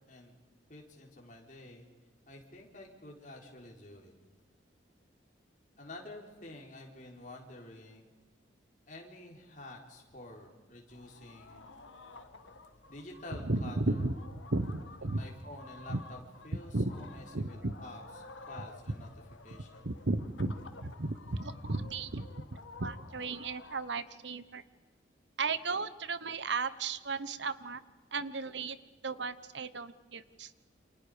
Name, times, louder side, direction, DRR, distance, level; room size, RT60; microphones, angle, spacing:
voice 1, 0.7-1.9 2.3-4.1 5.8-8.1 8.9-11.7 12.9-14.0 15.0-19.1 19.4-19.9, left 1 dB, 40° left, 0 dB, 4.3 m, -49 dB
sound 1, 10.9-23.9, left 3 dB, 85° left, 1.8 m, -53 dB
voice 2, 13.4-14.1 14.5-15.2 15.9-16.0 16.7-16.9 17.3-17.8 19.8-20.6 20.8-22.3 22.8-24.6 25.4-27.8 28.1-28.8 29.0-30.5, right 3 dB, 70° right, 14 dB, 1.1 m, -34 dB
29.0 x 26.5 x 5.1 m, 1.3 s
head